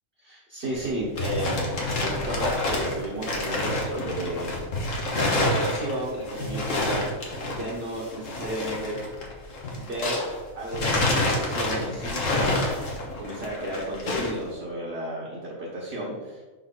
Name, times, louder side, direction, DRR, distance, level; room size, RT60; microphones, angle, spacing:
voice 1, 0.2-1.7 2.0-4.8 5.1-7.2 7.5-9.0 9.7-10.2 10.5-12.9 13.2-16.4, right 1 dB, 50° right, -7 dB, 1.8 m, -33 dB
sound 1, 0.8-10.4 10.7-14.4, left 2 dB, 70° left, 1.6 m, -28 dB
5.7 x 5.6 x 4.0 m, 1.3 s
omnidirectional pair, 1.4 m